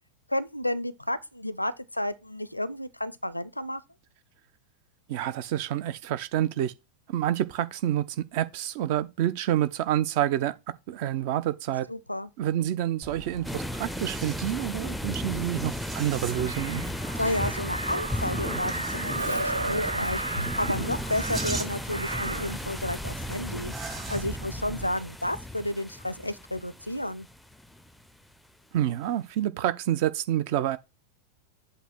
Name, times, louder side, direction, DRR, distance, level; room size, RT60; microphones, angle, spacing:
voice 1, 0.3-3.8 11.9-12.3 17.2-27.3, left 1 dB, 85° left, 0.5 m, -32 dB
voice 2, 5.1-6.7 7.1-8.1 8.3-10.5 10.9-11.9 12.4-16.8 28.7-30.8, right 12 dB, 50° right, 0.6 m, -28 dB
sound 1, 13.0-24.9, right 4 dB, 20° right, 1.1 m, -41 dB
sound 2, 13.4-28.0, left 1 dB, ahead, 0.5 m, -35 dB
Crow, 16.3-22.6 24.0-24.2, right 2 dB, 80° right, 0.4 m, -34 dB
8.2 x 2.8 x 5.9 m
figure-of-eight pair, 90°, 0 cm